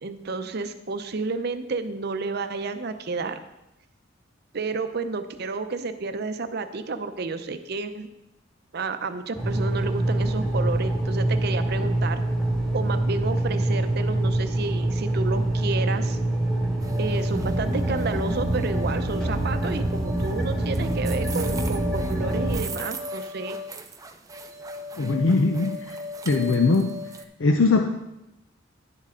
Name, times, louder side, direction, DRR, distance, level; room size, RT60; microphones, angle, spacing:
voice 1, 0.0-3.4 4.5-8.1 8.7-12.2 12.7-16.2 17.0-23.6, right 3 dB, 55° right, 9 dB, 0.6 m, -31 dB
sound 1, 9.4-22.6, right 1 dB, ahead, 1.7 m, -25 dB
sound 2, 16.8-27.2, left 1 dB, 20° right, 0.6 m, -37 dB
voice 2, 25.0-25.8 26.3-26.9 27.4-27.8, left 3 dB, 80° left, 4 dB, 0.6 m, -20 dB
11.0 x 7.5 x 3.8 m, 0.90 s
head